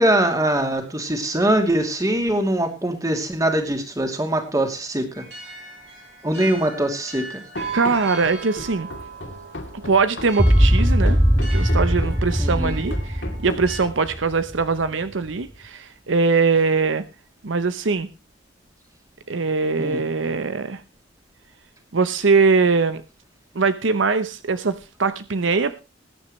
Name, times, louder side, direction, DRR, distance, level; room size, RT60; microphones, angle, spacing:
voice 1, 0.0-5.0 6.2-7.4 12.4-12.7 19.8-20.0, right 1 dB, 20° right, 5 dB, 2.7 m, -22 dB
sound 1, 5.1-13.8, right 4 dB, 65° right, 7.0 m, -38 dB
Run, 7.6-14.2, left 1 dB, 65° left, 2.9 m, -36 dB
voice 2, 7.7-8.9 9.8-17.0 17.4-18.1 19.3-20.8 21.9-23.0 23.5-25.8, right 4 dB, 80° right, 12 dB, 0.8 m, -22 dB
sound 2, 10.4-14.7, equal, ahead, 0.6 m, -19 dB
20.0 x 9.8 x 3.2 m, 0.29 s
head